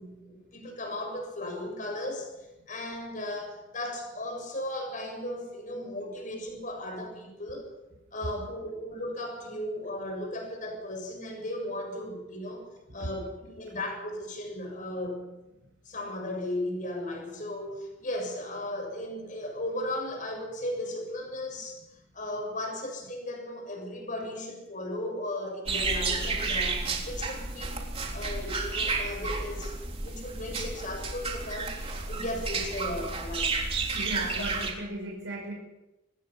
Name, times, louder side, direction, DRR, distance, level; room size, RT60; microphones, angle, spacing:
voice 1, 0.0-7.6 8.1-12.7 12.9-15.3 15.8-21.8 22.1-27.8 28.1-29.8 30.0-31.8 32.1-33.5, left 1 dB, 40° left, 3 dB, 7.6 m, -36 dB
sound 1, 25.7-34.7, right 3 dB, 30° right, 3.7 m, -31 dB
voice 2, 33.9-35.5, right 1 dB, 70° right, -1 dB, 5.4 m, -36 dB
25.0 x 20.0 x 5.9 m, 0.97 s
head